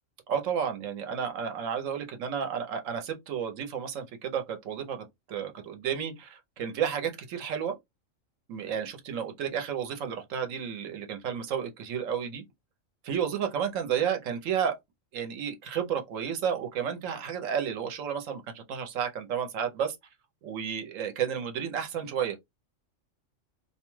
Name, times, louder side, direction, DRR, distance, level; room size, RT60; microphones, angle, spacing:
voice 1, 0.3-7.8 8.5-12.4 13.0-14.8 15.1-20.0 20.4-22.4, right 8 dB, 75° right, 1.1 m, -32 dB
2.6 x 2.2 x 3.1 m
omnidirectional pair, 1.4 m